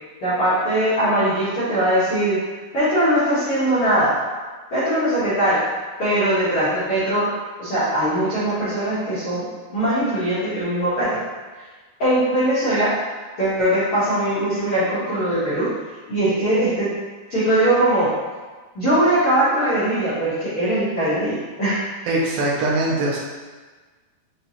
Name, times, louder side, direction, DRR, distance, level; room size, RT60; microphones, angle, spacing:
voice 1, 0.2-2.4 2.7-4.1 4.7-5.6 6.0-7.3 7.6-11.2 11.6-11.7 12.0-12.9 13.4-15.7 16.1-16.9 17.3-18.1 18.7-21.8, right 1 dB, 70° left, -13 dB, 1.3 m, -20 dB
voice 2, 22.1-23.2, right 2 dB, 80° right, -3 dB, 2.2 m, -21 dB
5.6 x 2.8 x 2.8 m, 1.4 s
omnidirectional pair, 4.2 m